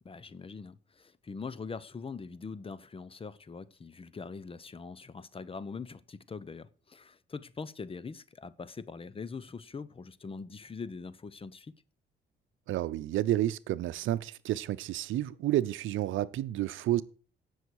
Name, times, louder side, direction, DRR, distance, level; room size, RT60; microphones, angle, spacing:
voice 1, 0.0-11.7, left 5 dB, 30° left, 0.8 m, -42 dB
voice 2, 12.7-17.0, right 14 dB, 80° right, 0.7 m, -30 dB
16.5 x 6.4 x 4.7 m
cardioid pair, 90°, 20 cm